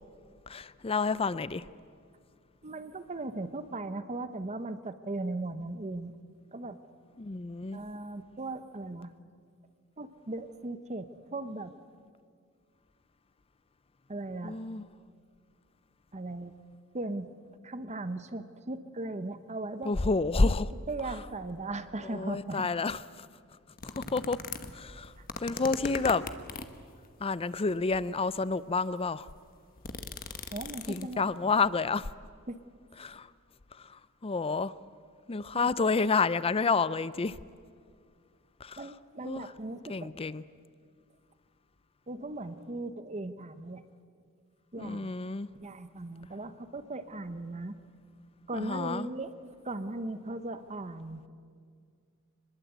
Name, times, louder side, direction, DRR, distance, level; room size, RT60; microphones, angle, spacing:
voice 1, 0.5-1.6 7.2-7.8 14.4-14.8 19.8-20.7 22.0-23.0 23.8-24.4 24.7-25.1 25.4-26.2 27.2-29.3 30.9-32.1 33.0-33.3 34.2-34.7 35.3-37.4 38.6-38.9 39.2-39.5 39.9-40.4 44.8-45.5 48.5-49.1, left 4 dB, 25° left, 0.5 m, -29 dB
voice 2, 2.6-6.1 6.5-6.8 7.7-9.1 10.0-11.7 14.1-14.6 16.1-16.5 16.9-17.3 17.6-19.9 20.9-22.7 30.5-31.2 32.5-32.6 35.5-35.7 38.8-40.1 42.1-43.8 44.7-45.1 45.6-47.8 48.5-51.3, right 2 dB, 30° right, 1.0 m, -38 dB
sound 1, 23.8-26.8 27.6-28.2 28.8-28.9 29.1-31.3 31.6-31.7, left 4 dB, 40° left, 1.2 m, -39 dB
25.5 x 21.5 x 8.2 m
head